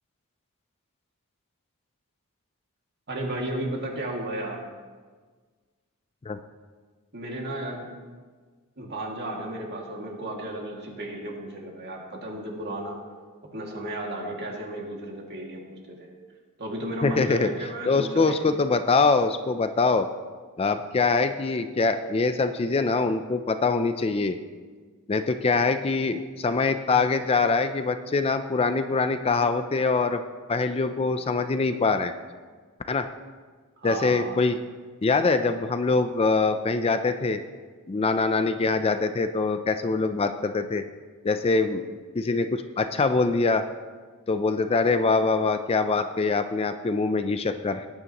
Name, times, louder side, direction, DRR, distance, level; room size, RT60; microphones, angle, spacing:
voice 1, 3.1-4.6 7.1-7.9 8.8-13.0 13.5-16.1 16.6-18.6 33.8-34.4, right 1 dB, 50° right, -1 dB, 2.1 m, -34 dB
voice 2, 17.0-20.1 20.6-24.4 25.1-30.2 30.5-32.1 32.9-33.1 33.8-34.6 35.0-37.4 37.9-40.8 41.2-43.6 44.3-47.9, left 4 dB, 25° left, 9 dB, 0.4 m, -24 dB
19.0 x 9.5 x 3.0 m, 1.5 s
head